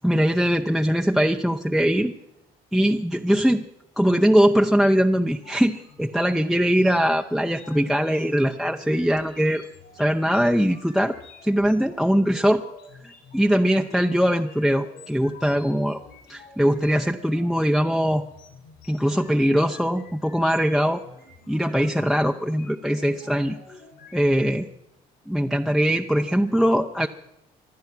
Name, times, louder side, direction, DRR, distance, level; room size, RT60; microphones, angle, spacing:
voice 1, 0.0-2.1 2.7-3.7 4.0-9.6 10.0-11.1 11.4-12.6 13.3-16.0 16.3-18.2 18.9-21.0 21.5-23.8 24.1-24.7 25.3-27.1, equal, ahead, 3 dB, 0.6 m, -21 dB
sound 1, 5.3-24.6, left 4 dB, 80° left, 6.4 m, -48 dB
24.5 x 9.5 x 6.1 m, 0.87 s
cardioid pair, 110°, 17 cm